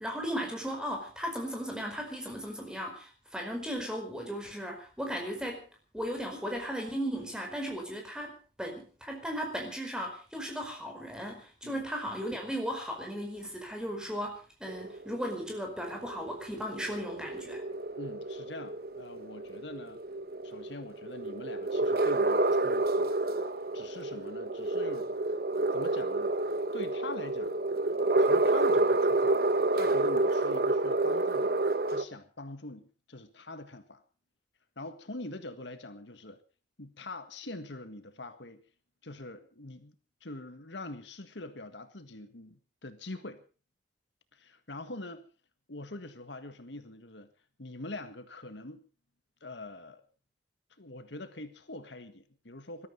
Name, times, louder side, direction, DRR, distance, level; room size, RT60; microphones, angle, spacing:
voice 1, 0.0-5.7 5.9-17.6, equal, 5° right, 2 dB, 4.9 m, -36 dB
sound 1, 14.7-32.0, right 2 dB, 55° right, 0.9 m, -29 dB
voice 2, 18.0-20.0 20.4-23.1 23.7-25.2 25.7-26.3 26.7-27.5 28.2-29.4 29.7-34.0 34.7-36.4 36.8-38.6 39.0-39.9 40.2-43.4 44.3-45.2 45.7-47.3 47.6-48.8 49.4-50.0 50.8-52.9, left 2 dB, 75° left, 9 dB, 1.7 m, -44 dB
20.5 x 13.0 x 5.4 m, 0.37 s
head